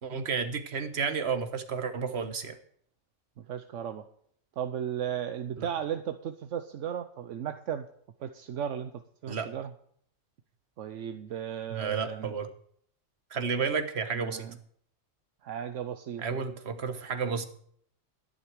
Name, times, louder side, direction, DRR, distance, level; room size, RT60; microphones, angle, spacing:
voice 1, 0.0-2.6 5.6-5.7 9.3-9.5 11.7-12.5 13.3-14.5 16.2-17.5, right 5 dB, 60° right, 9 dB, 1.5 m, -31 dB
voice 2, 3.4-4.1 4.6-7.9 8.2-9.7 10.8-12.3 14.1-14.6 15.4-16.4, right 9 dB, 75° right, 9 dB, 1.1 m, -35 dB
12.5 x 10.5 x 4.8 m, 0.63 s
omnidirectional pair, 1.3 m